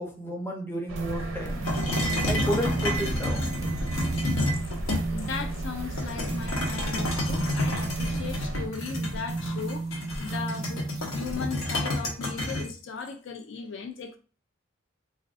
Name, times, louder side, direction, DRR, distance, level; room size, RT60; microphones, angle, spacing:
voice 1, 0.0-1.7 2.2-3.5, equal, 10° left, 0 dB, 0.6 m, -32 dB
sound 1, 0.9-8.7, right 1 dB, 80° right, 0.6 m, -37 dB
sound 2, 1.0-11.6, right 3 dB, 35° right, 0.4 m, -34 dB
sound 3, 1.6-5.3 6.0-12.6, left 1 dB, 85° left, 0.9 m, -30 dB
voice 2, 5.1-10.8 11.1-14.2, left 5 dB, 65° left, 5 dB, 0.4 m, -37 dB
2.5 x 2.3 x 3.5 m, 0.36 s
head